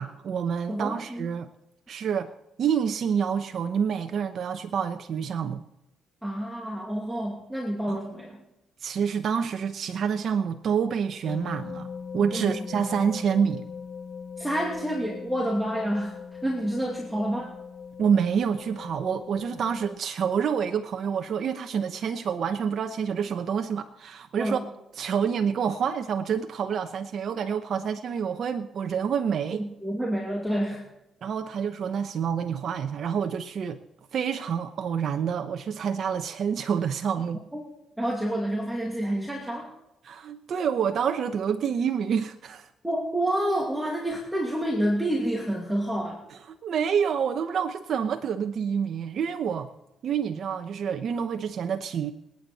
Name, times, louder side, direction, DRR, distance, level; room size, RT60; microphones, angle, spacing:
voice 1, 0.0-1.5 1.9-2.3 2.6-5.6 7.9-8.0 8.8-11.9 12.1-13.6 18.0-24.6 25.0-29.7 31.2-33.8 34.1-37.4 40.0-42.7 46.3-49.7 50.0-52.1, right 7 dB, 60° right, 0.9 m, -27 dB
voice 2, 0.7-1.3 6.2-8.4 12.3-12.7 14.4-17.5 24.4-24.7 29.6-30.9 37.5-37.6 38.0-39.7 42.8-46.2, right 1 dB, 5° right, 2.5 m, -28 dB
sound 1, 11.3-20.0, left 6 dB, 45° left, 1.1 m, -40 dB
27.5 x 9.4 x 4.2 m
cardioid pair, 90°, 0 cm